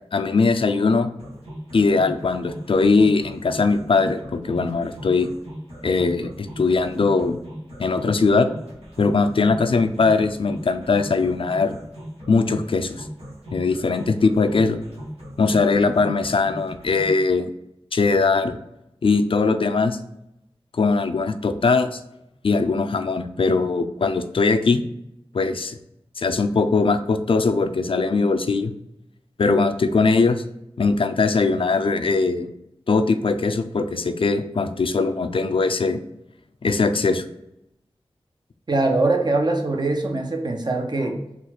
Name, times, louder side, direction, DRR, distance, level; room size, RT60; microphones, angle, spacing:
voice 1, 0.1-1.1 1.7-5.3 5.8-7.4 7.8-8.5 9.0-11.8 12.3-13.1 13.5-14.8 15.4-17.5 17.9-18.6 19.0-20.0 20.7-22.0 22.4-24.8 25.3-25.8 26.2-28.7 29.4-30.4 30.8-32.5 32.9-36.0 36.6-37.2, left 4 dB, 60° left, 8 dB, 0.4 m, -20 dB
sound 1, 1.2-17.2, equal, 90° right, 1.3 m, -39 dB
voice 2, 38.7-41.2, right 2 dB, 45° right, 2 dB, 0.7 m, -22 dB
3.9 x 2.4 x 4.2 m, 0.83 s
wide cardioid pair, 55°, 10 cm